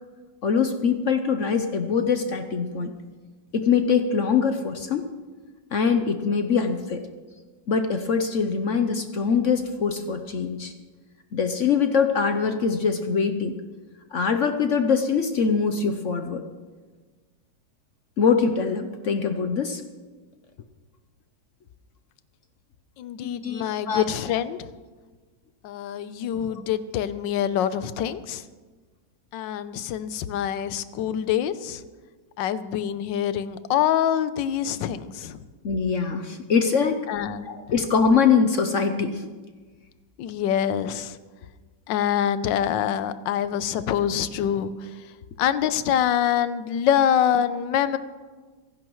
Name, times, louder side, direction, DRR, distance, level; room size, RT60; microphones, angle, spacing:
voice 1, 0.4-2.9 3.5-5.1 5.7-7.1 7.7-10.7 11.3-13.6 14.1-16.4 18.2-19.8 23.2-24.0 26.5-26.6 35.6-37.0 37.4-39.3, left 5 dB, 60° left, 7 dB, 0.8 m, -23 dB
voice 2, 23.0-24.7 25.6-28.4 29.3-31.8 32.4-35.4 37.1-37.6 40.2-41.2 41.9-44.9 45.4-48.0, left 9 dB, 80° left, 13 dB, 1.4 m, -25 dB
26.0 x 11.0 x 3.1 m, 1.4 s
omnidirectional pair, 2.0 m